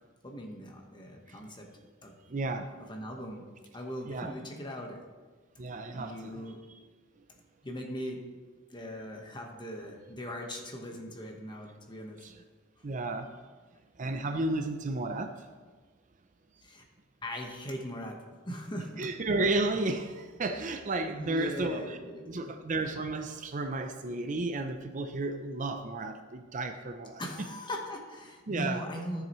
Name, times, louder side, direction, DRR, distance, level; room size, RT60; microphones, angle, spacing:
voice 1, 0.2-1.7 2.0-2.1 2.8-5.0 5.9-6.6 7.6-8.3 8.7-12.2 16.6-16.8 17.2-19.1 21.1-22.5 27.2-29.2, equal, 25° left, 2 dB, 1.3 m, -40 dB
voice 2, 2.3-2.7 4.1-4.3 5.6-6.4 12.2-12.3 12.8-13.3 14.0-15.3 19.0-22.0 22.3-27.2 28.5-28.8, right 2 dB, 40° right, 8 dB, 0.6 m, -33 dB
13.0 x 7.5 x 3.1 m, 1.4 s
head